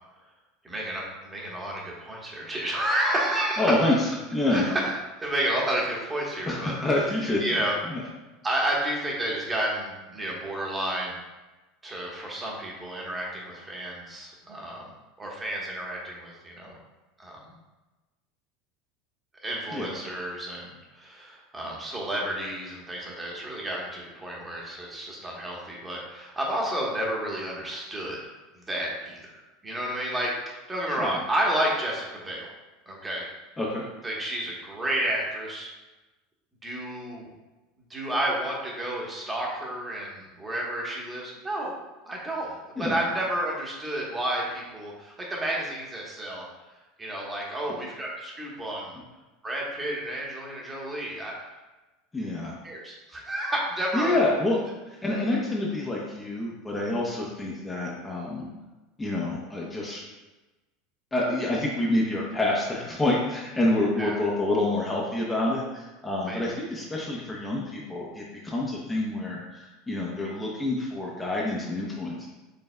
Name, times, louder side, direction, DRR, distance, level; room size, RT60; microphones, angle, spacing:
voice 1, 0.6-3.8 4.5-4.9 5.2-6.8 7.4-7.7 8.4-11.2 11.8-14.9 15.2-16.8 17.2-17.4 19.4-28.2 28.5-29.2 29.6-32.5 32.9-33.3 34.0-35.7 36.6-37.3 37.9-41.8 42.1-46.5 47.0-48.9 49.4-51.5 52.6-54.1 64.0-64.2 66.3-66.4, right 1 dB, 20° right, -3 dB, 1.2 m, -31 dB
voice 2, 3.6-4.7 6.5-7.6 7.9-8.0 19.7-20.0 31.0-31.2 33.6-33.8 42.8-43.0 52.1-52.6 53.9-54.6 54.9-58.4 59.0-60.0 61.1-72.3, left 2 dB, 15° left, -4 dB, 0.8 m, -27 dB
5.4 x 3.3 x 2.2 m, 1.1 s
hypercardioid pair, 90°, 0 cm